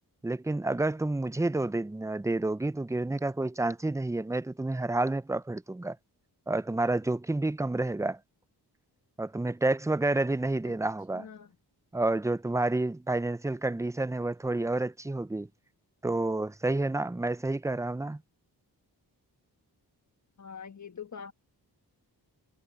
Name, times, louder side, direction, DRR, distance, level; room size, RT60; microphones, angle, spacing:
voice 1, 0.2-6.0 6.5-8.2 9.2-11.3 11.9-15.5 16.0-18.2, right 2 dB, 5° right, 0.5 m, -29 dB
voice 2, 11.1-11.5 20.4-21.3, left 7 dB, 45° left, 1.3 m, -43 dB
cardioid pair, 60°, 41 cm